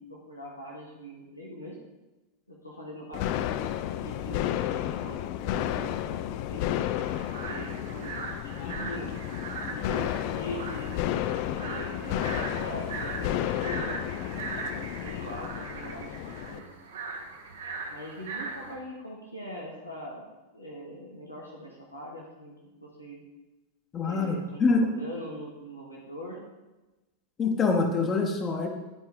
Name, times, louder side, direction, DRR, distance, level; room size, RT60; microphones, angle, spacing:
voice 1, 0.0-1.8 2.5-6.7 7.4-9.2 9.6-11.0 11.5-16.6 17.9-20.2 20.5-22.5 22.8-23.2 24.0-26.4, equal, 85° left, -3 dB, 1.5 m, -42 dB
sound 1, 3.1-16.6, left 12 dB, 45° left, 0.4 m, -32 dB
sound 2, 7.0-18.8, right 4 dB, 60° right, 1.0 m, -40 dB
voice 2, 23.9-24.9 27.4-28.7, left 4 dB, 25° left, 3 dB, 1.1 m, -25 dB
10.5 x 4.6 x 3.6 m, 1.1 s
figure-of-eight pair, 90°, 0 cm